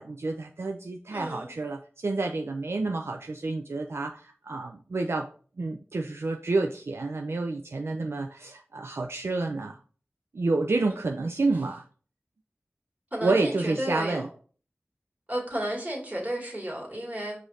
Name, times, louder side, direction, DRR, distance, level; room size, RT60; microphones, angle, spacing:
voice 1, 0.0-5.3 5.6-9.8 10.3-11.8 13.2-14.3, right 3 dB, 70° right, 3 dB, 0.3 m, -29 dB
voice 2, 1.1-1.5 13.1-14.3 15.3-17.4, right 1 dB, 35° right, -2 dB, 1.8 m, -32 dB
4.9 x 2.5 x 4.0 m, 0.42 s
wide cardioid pair, 50°, 5 cm